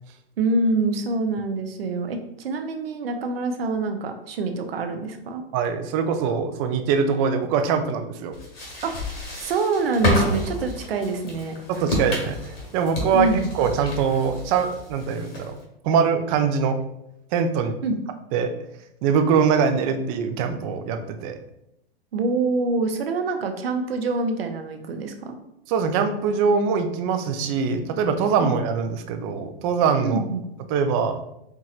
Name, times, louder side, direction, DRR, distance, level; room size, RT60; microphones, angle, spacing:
voice 1, 0.4-5.4 8.8-8.9 9.4-11.5 13.1-13.4 17.8-18.0 22.1-25.4 28.4-28.5 30.0-30.4, right 3 dB, 75° right, 6 dB, 0.7 m, -25 dB
voice 2, 5.5-8.3 11.7-12.4 12.7-13.3 13.5-15.5 15.8-16.8 17.3-17.8 18.3-18.5 19.0-21.3 25.7-30.2 30.7-31.2, right 6 dB, 35° right, 8 dB, 0.4 m, -23 dB
sound 1, 8.3-15.6, left 2 dB, 75° left, 1.4 m, -30 dB
4.6 x 2.9 x 2.4 m, 0.81 s
hypercardioid pair, 110°, 30 cm